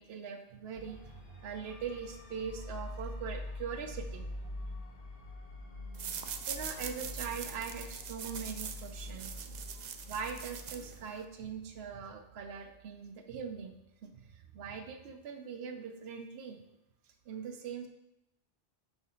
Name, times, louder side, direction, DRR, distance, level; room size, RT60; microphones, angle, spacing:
voice 1, 0.0-4.4 6.1-13.7 14.0-16.6 17.3-17.9, right 6 dB, 75° right, 5 dB, 0.9 m, -42 dB
sound 1, 0.7-11.8, left 1 dB, 60° left, 1.5 m, -45 dB
sound 2, 5.9-11.3, right 7 dB, 55° right, 0.5 m, -43 dB
6.2 x 4.8 x 4.3 m, 0.88 s
omnidirectional pair, 1.1 m